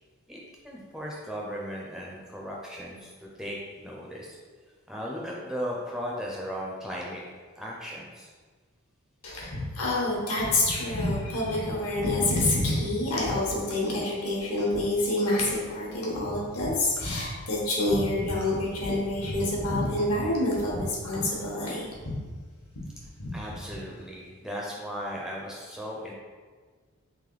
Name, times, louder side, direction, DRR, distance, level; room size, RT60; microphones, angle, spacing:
voice 1, 0.3-4.4 4.9-7.2 7.6-8.3 23.3-26.1, equal, ahead, -3 dB, 0.4 m, -37 dB
voice 2, 9.2-22.1 23.2-23.6, left 1 dB, 75° left, -4 dB, 1.1 m, -27 dB
3.3 x 3.0 x 3.8 m, 1.5 s
head